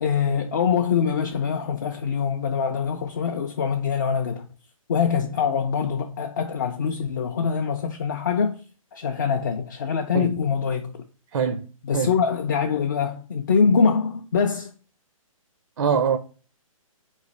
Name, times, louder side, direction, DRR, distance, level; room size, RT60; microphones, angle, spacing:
voice 1, 0.0-4.5 4.9-8.6 8.9-11.0 11.8-14.7, left 6 dB, 35° left, 0.4 m, -24 dB
voice 2, 11.3-11.7 11.9-12.1 15.8-16.2, right 6 dB, 55° right, 0.5 m, -23 dB
4.1 x 3.1 x 3.8 m
hypercardioid pair, 165°, 18 cm